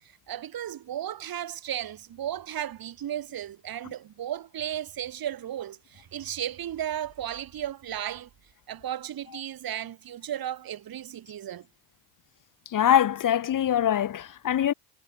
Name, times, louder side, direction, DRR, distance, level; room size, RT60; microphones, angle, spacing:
voice 1, 0.3-8.3 8.7-11.7, right 11 dB, 45° right, 4.1 m, -35 dB
voice 2, 12.7-14.7, left 10 dB, 40° left, 1.8 m, -23 dB
supercardioid pair, 85°, 48 cm